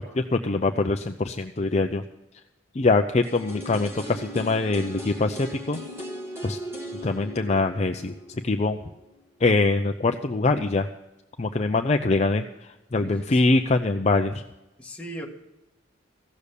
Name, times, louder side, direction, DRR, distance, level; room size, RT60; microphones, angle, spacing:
voice 1, 0.0-2.0 2.7-5.8 6.4-6.6 7.0-8.1 8.4-8.8 9.4-10.9 11.4-14.4, left 3 dB, 35° left, 5 dB, 0.5 m, -23 dB
sound 1, 3.2-9.1 9.4-9.5, equal, 15° right, 1.8 m, -39 dB
voice 2, 13.0-13.4 14.8-15.3, right 1 dB, 5° left, -2 dB, 1.7 m, -38 dB
15.5 x 6.9 x 8.3 m, 0.95 s
head